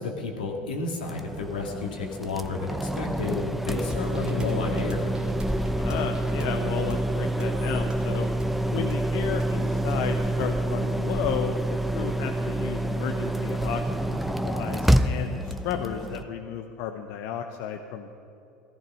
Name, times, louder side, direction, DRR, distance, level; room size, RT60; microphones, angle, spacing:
voice 1, 0.0-5.1, left 3 dB, 85° left, 2 dB, 2.0 m, -31 dB
sound 1, 1.0-16.2, right 1 dB, 5° right, 0.7 m, -27 dB
sound 2, 3.9-11.4, right 1 dB, 20° right, 1.7 m, -41 dB
voice 2, 5.8-8.3 8.7-18.1, left 9 dB, 65° left, 5 dB, 0.8 m, -33 dB
14.5 x 14.5 x 5.6 m, 2.8 s
hypercardioid pair, 80°, 5 cm